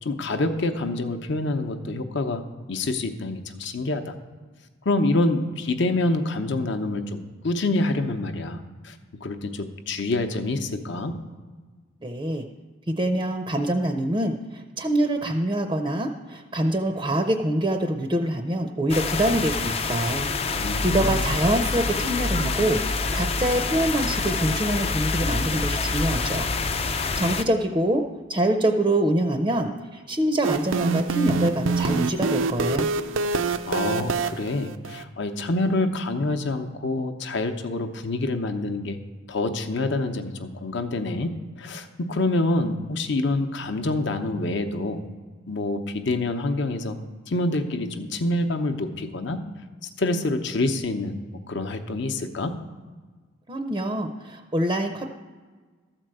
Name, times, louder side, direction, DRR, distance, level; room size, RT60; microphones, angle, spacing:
voice 1, 0.0-2.4 2.7-4.1 4.8-8.9 9.2-11.2 20.6-21.3 33.7-39.0 39.3-41.3 41.6-45.0 45.5-47.0 47.3-49.4 50.0-51.2 51.5-52.5, left 2 dB, 60° left, 7 dB, 0.8 m, -26 dB
voice 2, 12.0-12.5 12.9-26.5 26.8-32.9 53.5-55.1, right 1 dB, 20° right, 5 dB, 0.5 m, -25 dB
sound 1, 18.9-27.4, left 4 dB, 30° left, 0.4 m, -26 dB
sound 2, 30.4-35.0, right 4 dB, 75° right, 0.5 m, -26 dB
13.0 x 4.6 x 7.7 m, 1.4 s
head